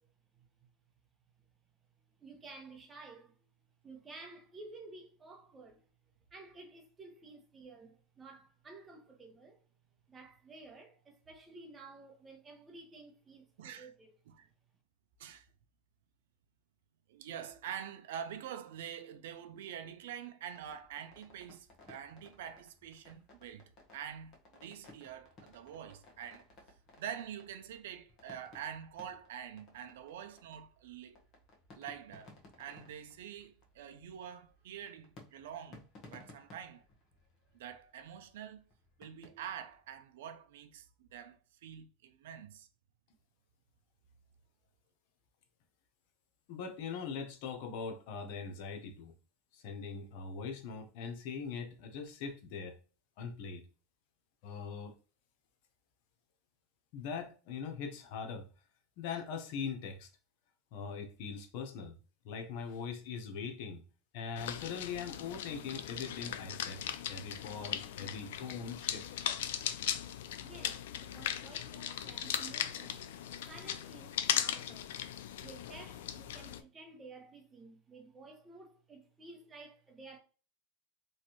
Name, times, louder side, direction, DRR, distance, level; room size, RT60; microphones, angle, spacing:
voice 1, 2.2-3.4 3.8-5.9 6.3-9.6 10.1-14.1 70.4-73.0 73.5-75.0 75.4-80.2, right 3 dB, 20° right, 1.0 m, -53 dB
voice 2, 13.6-13.9 14.3-14.5 15.2-15.5 17.1-23.6 23.9-24.3 24.6-26.5 27.0-31.2 31.7-32.3 32.6-36.8 37.5-38.6 39.0-42.7, right 9 dB, 80° right, 0.4 m, -46 dB
sound 1, 20.5-40.0, left 2 dB, 45° left, 1.1 m, -60 dB
voice 3, 46.5-49.1 49.5-52.8 53.2-53.6 54.4-54.9 56.9-58.5 59.0-60.1 60.7-61.9 62.2-63.8 64.1-66.8 67.1-69.0, left 5 dB, 65° left, 0.7 m, -41 dB
sound 2, 64.4-76.6, left 10 dB, 85° left, 0.3 m, -38 dB
3.1 x 2.5 x 2.9 m
supercardioid pair, 120°, 0 cm